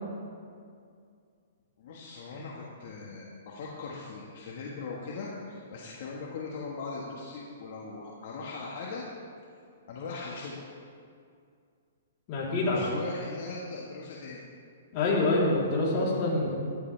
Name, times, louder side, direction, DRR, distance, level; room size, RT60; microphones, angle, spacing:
voice 1, 1.8-9.0 9.9-10.6 12.5-14.4, left 4 dB, 55° left, -4 dB, 1.7 m, -40 dB
voice 2, 12.3-13.0 14.9-16.5, left 2 dB, 35° left, -6 dB, 3.6 m, -26 dB
14.5 x 12.0 x 3.5 m, 2.3 s
hypercardioid pair, 155°, 0 cm